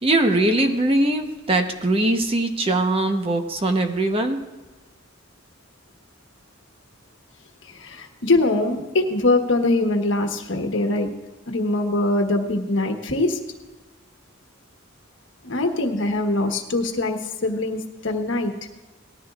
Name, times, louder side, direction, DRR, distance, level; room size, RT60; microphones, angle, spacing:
voice 1, 0.0-4.4, right 1 dB, 30° right, 5 dB, 0.9 m, -21 dB
voice 2, 7.7-11.1 11.5-13.4 15.4-18.5, left 2 dB, 70° left, 4 dB, 1.3 m, -22 dB
19.0 x 14.0 x 2.4 m, 1.2 s
head